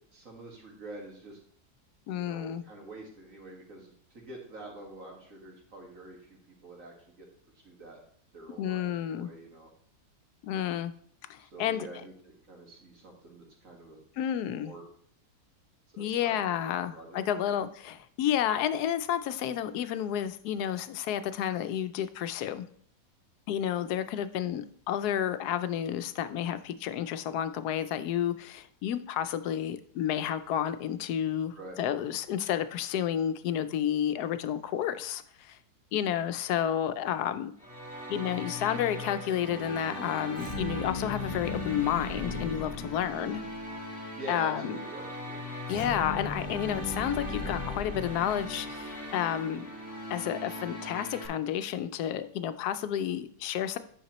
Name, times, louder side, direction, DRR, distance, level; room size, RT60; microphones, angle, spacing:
voice 1, 0.1-1.4 2.1-7.3 7.5-8.0 8.3-9.7 11.4-14.0 14.5-14.8 15.9-16.4 16.9-17.6 31.5-31.8 44.2-45.4, right 2 dB, 55° right, 0 dB, 2.1 m, -46 dB
voice 2, 2.1-2.6 8.6-9.3 10.4-10.9 11.3-11.9 14.2-14.7 16.0-22.7 23.5-35.6 35.9-37.5 38.1-43.4 44.3-44.8 45.7-49.7 50.1-53.8, left 10 dB, 80° left, 12 dB, 1.1 m, -31 dB
sound 1, 37.6-51.3, equal, 5° right, 2.0 m, -40 dB
sound 2, 40.3-43.7 45.7-49.0, left 3 dB, 25° left, 0.8 m, -37 dB
9.4 x 5.8 x 3.0 m, 0.62 s
omnidirectional pair, 1.7 m